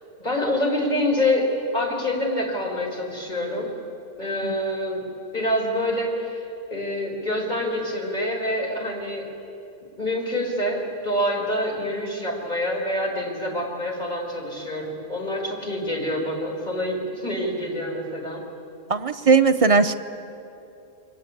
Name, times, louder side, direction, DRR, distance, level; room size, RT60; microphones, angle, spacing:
voice 1, 0.2-3.7 4.2-5.0 5.3-6.4 6.7-9.3 10.0-18.4, left 1 dB, 30° left, -1 dB, 5.2 m, -26 dB
voice 2, 18.9-19.9, right 4 dB, 35° right, 8 dB, 0.6 m, -18 dB
29.0 x 23.0 x 8.6 m, 2.8 s
omnidirectional pair, 1.4 m